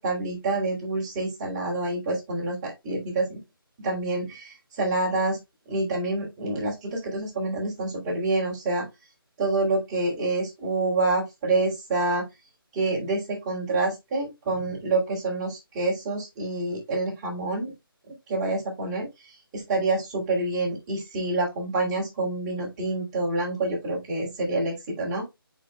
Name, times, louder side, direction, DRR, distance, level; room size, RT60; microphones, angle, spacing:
voice 1, 0.0-3.4 3.8-5.4 5.7-8.9 9.4-12.2 12.7-17.7 18.1-19.1 19.5-25.2, right 2 dB, 15° right, -4 dB, 3.1 m, -27 dB
9.5 x 5.0 x 2.2 m, 0.21 s
figure-of-eight pair, 165°, 12 cm